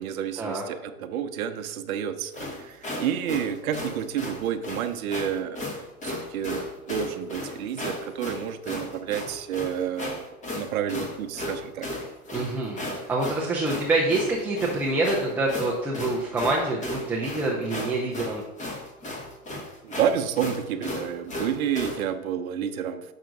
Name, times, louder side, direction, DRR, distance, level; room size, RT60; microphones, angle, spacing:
voice 1, 0.0-5.6 6.0-10.2 10.5-11.9 19.8-23.1, right 9 dB, 65° right, 8 dB, 0.8 m, -30 dB
sound 1, 2.3-22.0, left 1 dB, 15° left, 1.3 m, -35 dB
voice 2, 12.3-18.4, right 2 dB, 5° right, -3 dB, 0.4 m, -26 dB
6.4 x 5.7 x 3.9 m, 0.98 s
hypercardioid pair, 130°, 44 cm